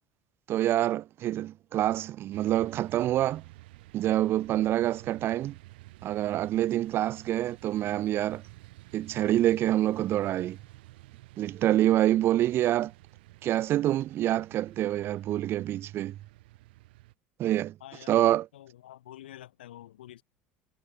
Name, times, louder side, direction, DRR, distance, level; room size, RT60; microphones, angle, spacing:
voice 1, 0.5-3.4 3.9-5.6 6.0-8.4 8.9-10.6 11.4-12.9 13.4-16.2 17.4-17.7 18.1-18.5, right 13 dB, 50° right, 0.3 m, -26 dB
sound 1, 2.3-17.1, right 19 dB, 75° right, 2.6 m, -51 dB
voice 2, 17.8-20.2, left 13 dB, 85° left, 2.1 m, -48 dB
hypercardioid pair, 80°, 5 cm